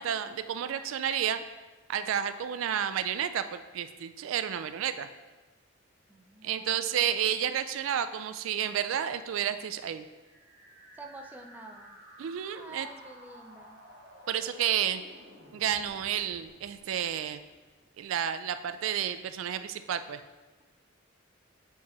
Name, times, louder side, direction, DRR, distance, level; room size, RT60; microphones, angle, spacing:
voice 1, 0.0-1.4 1.9-5.1 6.4-10.0 12.2-12.9 14.3-15.0 15.5-17.4 18.0-20.2, right 9 dB, 80° right, 11 dB, 0.3 m, -31 dB
voice 2, 6.1-7.0 11.0-12.0 12.6-13.8, right 2 dB, 10° right, 2 dB, 0.4 m, -48 dB
sound 1, 10.1-18.0, equal, 55° right, 1.2 m, -54 dB
7.1 x 4.7 x 3.0 m, 1.2 s
head